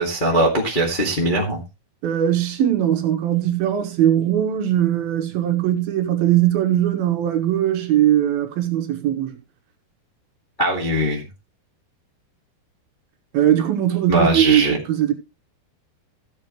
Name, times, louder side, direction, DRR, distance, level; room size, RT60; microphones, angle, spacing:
voice 1, 0.0-1.6 10.6-11.3 14.1-14.8, right 1 dB, 20° left, 1.2 m, -20 dB
voice 2, 2.0-9.3 13.3-15.1, right 11 dB, 70° right, 3.1 m, -20 dB
15.0 x 8.1 x 3.1 m
omnidirectional pair, 4.6 m